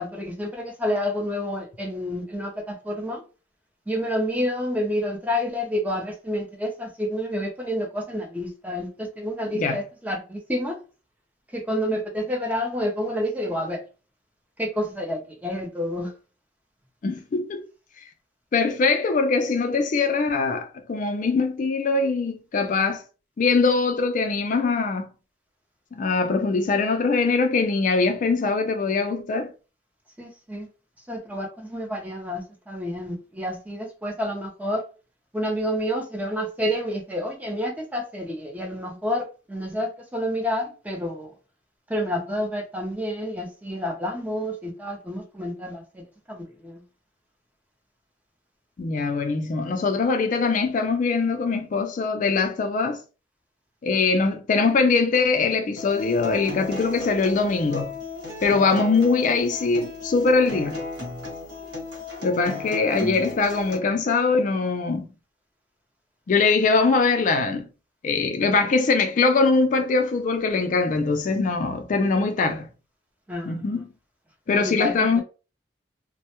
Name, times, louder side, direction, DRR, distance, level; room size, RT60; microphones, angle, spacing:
voice 1, 0.0-3.2 3.9-10.8 11.5-13.8 14.6-16.2 30.2-30.7 31.1-34.8 35.3-41.3 41.9-46.8 73.3-73.8 74.5-75.2, equal, 10° right, 0.5 m, -29 dB
voice 2, 17.0-17.6 18.0-18.1 18.5-23.0 23.4-25.1 25.9-29.5 48.8-53.0 53.8-58.0 58.4-60.9 62.2-65.1 66.3-67.7 68.0-72.7 73.5-73.8 74.5-75.2, left 4 dB, 45° left, 0.3 m, -22 dB
Acoustic guitar, 55.8-63.8, left 2 dB, 80° right, 1.1 m, -35 dB
2.1 x 2.0 x 2.8 m
head